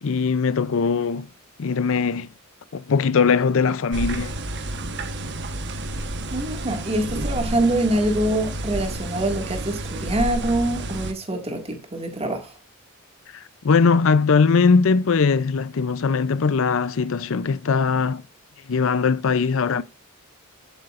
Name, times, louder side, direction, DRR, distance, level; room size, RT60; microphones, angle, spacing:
voice 1, 0.0-1.3 1.6-2.3 2.7-4.3 13.3-18.2 18.7-19.8, left 5 dB, 65° left, 0.5 m, -20 dB
sound 1, 3.9-11.1, right 1 dB, 55° right, 1.2 m, -30 dB
voice 2, 6.3-12.5, right 1 dB, 30° right, 2.0 m, -25 dB
10.5 x 7.9 x 2.5 m
head